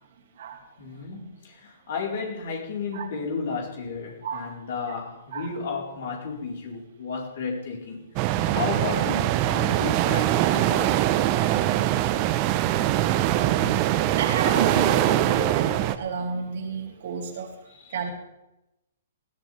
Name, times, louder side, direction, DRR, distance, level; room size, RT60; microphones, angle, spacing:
voice 1, 0.8-11.0 17.7-18.1, left 5 dB, 60° left, -1 dB, 4.5 m, -33 dB
voice 2, 4.2-4.5 5.3-5.5 13.3-13.8 14.2-15.7 16.0-17.5 17.9-18.1, right 5 dB, 60° right, 1 dB, 3.1 m, -31 dB
sound 1, 8.2-16.0, right 13 dB, 35° right, 0.9 m, -23 dB
19.5 x 14.5 x 3.5 m, 0.90 s
figure-of-eight pair, 120°, 0 cm